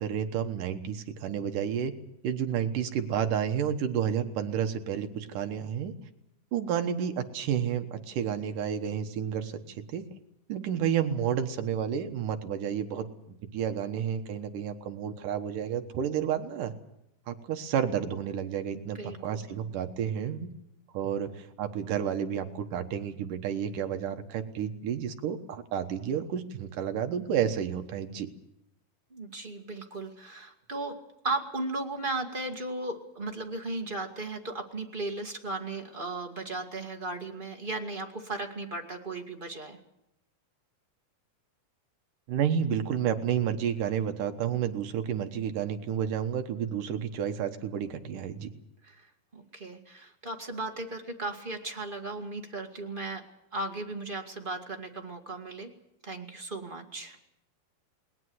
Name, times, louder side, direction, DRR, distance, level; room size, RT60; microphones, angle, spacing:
voice 1, 0.0-1.9 2.2-5.9 6.5-10.1 10.5-13.1 13.5-16.7 17.3-20.5 20.9-28.3 42.3-48.5, right 8 dB, 65° right, 7 dB, 2.7 m, -31 dB
voice 2, 18.7-19.4 29.1-30.9 31.2-39.8 48.8-49.1 49.3-53.2 53.5-55.7 56.0-57.2, right 2 dB, 30° right, 3 dB, 0.9 m, -36 dB
20.0 x 20.0 x 7.9 m, 0.81 s
omnidirectional pair, 4.3 m